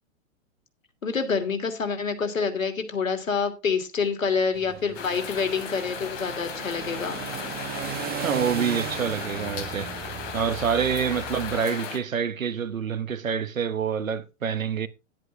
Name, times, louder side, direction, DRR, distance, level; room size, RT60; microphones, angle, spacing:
voice 1, 1.0-7.2, left 5 dB, 85° left, 2.9 m, -27 dB
sound 1, 4.5-11.6, right 10 dB, 25° right, 1.4 m, -37 dB
sound 2, 4.9-12.0, left 7 dB, 50° left, 3.6 m, -36 dB
voice 2, 8.2-9.9 10.3-14.9, right 7 dB, 85° right, 1.4 m, -27 dB
11.0 x 10.5 x 3.5 m
hypercardioid pair, 115°, 39 cm